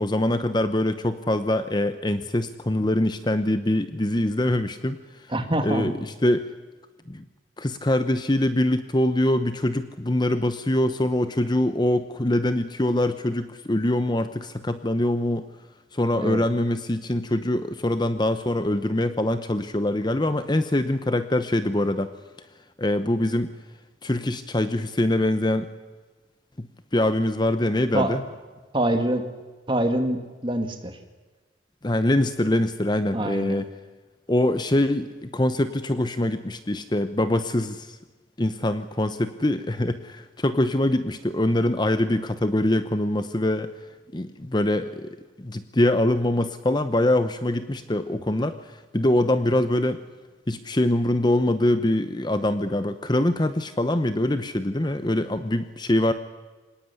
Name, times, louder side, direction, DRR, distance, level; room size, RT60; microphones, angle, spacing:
voice 1, 0.0-5.0 5.6-6.5 7.1-7.2 7.6-15.5 15.9-22.1 22.8-23.5 24.0-25.7 26.6-26.7 26.9-28.2 31.8-33.7 34.3-38.0 38.4-43.7 44.1-50.0 50.5-56.1, left 1 dB, 20° left, 10 dB, 0.8 m, -24 dB
voice 2, 5.3-5.9 16.1-16.4 27.9-28.2 28.7-29.2 29.7-31.0 33.1-33.6, right 1 dB, 25° right, 6 dB, 2.3 m, -25 dB
26.0 x 18.5 x 9.8 m, 1.3 s
head